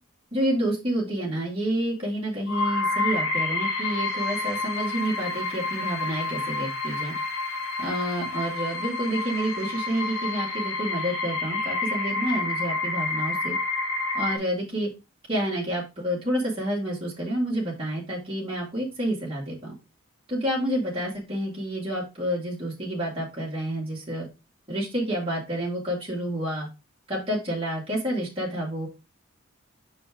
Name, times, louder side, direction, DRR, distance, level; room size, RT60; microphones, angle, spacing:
voice 1, 0.3-7.1 7.8-13.5 14.1-14.9 15.3-19.7 20.3-24.3 24.7-26.7 27.1-28.9, right 1 dB, 25° right, -4 dB, 2.4 m, -29 dB
sound 1, 2.5-14.4, left 3 dB, 65° left, 1.9 m, -29 dB
6.1 x 5.0 x 3.7 m, 0.27 s
head